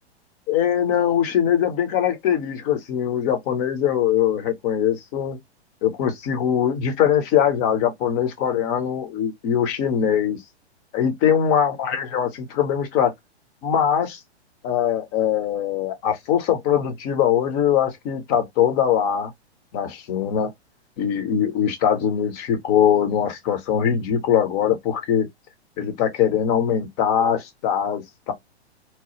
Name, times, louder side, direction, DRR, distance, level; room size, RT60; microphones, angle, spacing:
voice 1, 0.5-5.4 5.8-10.4 10.9-13.1 13.6-14.2 14.6-19.3 19.7-20.5 21.0-25.3 25.8-28.3, left 9 dB, 35° left, 0.9 m, -22 dB
3.0 x 2.0 x 3.0 m
hypercardioid pair, 120°, 33 cm